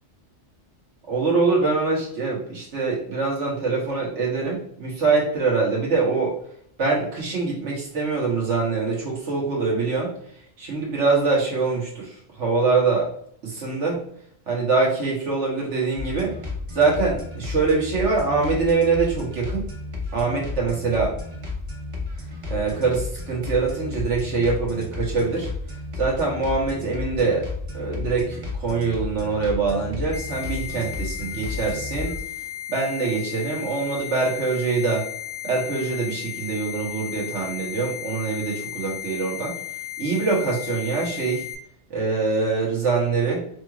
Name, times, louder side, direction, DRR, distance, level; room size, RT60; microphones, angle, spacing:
voice 1, 1.1-6.4 6.8-10.1 10.6-12.1 12.4-13.1 13.4-14.0 14.5-16.3 16.7-19.7 20.1-21.1 22.5-25.5 26.0-27.4 27.7-32.2 32.7-35.0 35.4-39.6 40.0-41.4 41.9-43.4, right 4 dB, 75° right, -3 dB, 1.6 m, -24 dB
sound 1, 16.0-32.2, left 3 dB, 30° right, 1.0 m, -33 dB
sound 2, 30.1-41.5, left 13 dB, 30° left, 0.5 m, -35 dB
5.1 x 3.2 x 2.4 m, 0.65 s
omnidirectional pair, 1.2 m